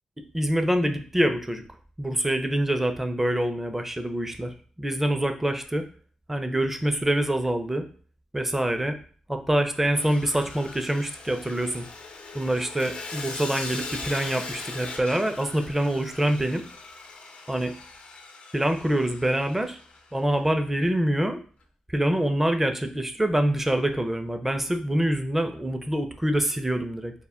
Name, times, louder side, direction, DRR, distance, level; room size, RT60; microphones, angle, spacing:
voice 1, 0.3-1.6 2.0-5.8 6.3-7.8 8.3-9.0 9.3-11.8 12.3-16.6 17.5-17.7 18.5-19.8 20.1-21.4 21.9-27.1, right 1 dB, 10° right, 7 dB, 0.4 m, -25 dB
Sawing, 9.9-20.2, left 3 dB, 70° left, 0.5 m, -40 dB
2.2 x 2.1 x 3.6 m, 0.42 s
cardioid pair, 65°, 2 cm